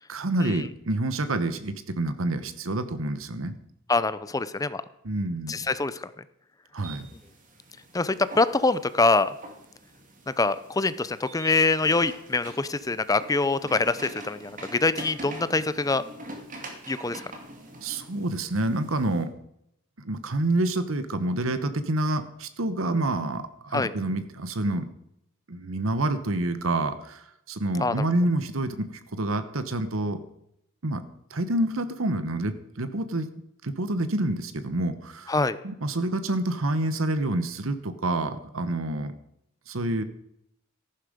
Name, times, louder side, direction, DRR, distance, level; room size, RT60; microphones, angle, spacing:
voice 1, 0.1-3.5 5.0-5.6 6.7-7.1 17.8-19.3 20.0-24.9 25.5-30.2 30.8-31.0 31.3-33.3 33.6-35.3 35.6-39.1 39.7-40.0, right 1 dB, 80° right, 11 dB, 1.1 m, -28 dB
voice 2, 3.9-4.8 5.5-6.1 7.9-9.3 10.4-16.0 16.9-17.2 23.7-23.9 27.8-28.0 35.3-35.6, left 3 dB, 15° left, 14 dB, 0.5 m, -24 dB
sound 1, 6.8-19.2, right 1 dB, 40° right, 2.5 m, -45 dB
14.5 x 11.5 x 5.1 m, 0.77 s
head